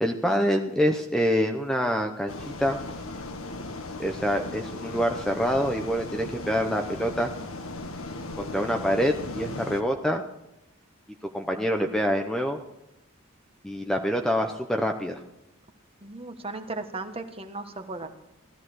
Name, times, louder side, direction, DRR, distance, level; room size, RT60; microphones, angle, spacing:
voice 1, 0.0-2.8 4.0-7.3 8.4-10.2 11.3-12.6 13.6-15.2, equal, 5° left, 4 dB, 0.8 m, -26 dB
sound 1, 2.3-9.8, left 2 dB, 80° left, 1.6 m, -37 dB
voice 2, 16.0-18.1, right 3 dB, 25° right, 7 dB, 1.4 m, -36 dB
16.5 x 14.0 x 6.3 m, 0.89 s
head